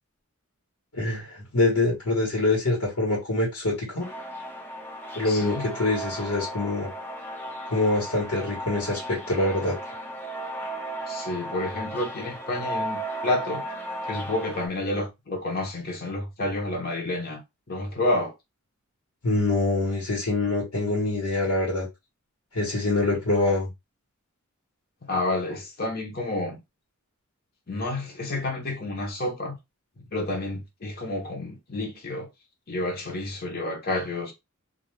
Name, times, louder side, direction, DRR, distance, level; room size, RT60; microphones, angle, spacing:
voice 1, 0.9-4.1 5.1-6.9 7.7-9.8 19.2-21.9 22.5-23.7, left 2 dB, 85° left, 1.2 m, -25 dB
sound 1, 4.0-14.7, right 1 dB, 10° left, 0.6 m, -35 dB
voice 2, 5.2-5.6 11.1-13.6 14.1-17.4 17.7-18.3 25.0-26.6 27.7-29.5 30.0-32.3 32.7-34.3, left 2 dB, 45° left, 0.8 m, -29 dB
2.4 x 2.3 x 3.1 m
head